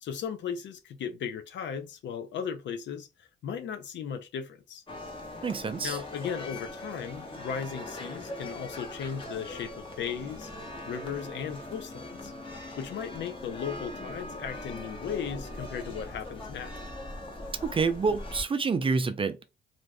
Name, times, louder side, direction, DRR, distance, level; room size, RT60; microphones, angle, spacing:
voice 1, 0.0-4.8 5.8-10.5 10.8-12.3 12.8-16.7, left 7 dB, 65° left, 0.6 m, -36 dB
sound 1, 4.9-18.4, left 1 dB, 25° left, 1.0 m, -41 dB
voice 2, 5.4-6.0 17.6-19.5, right 4 dB, 25° right, 0.4 m, -28 dB
2.5 x 2.4 x 3.3 m
cardioid pair, 90°, 20 cm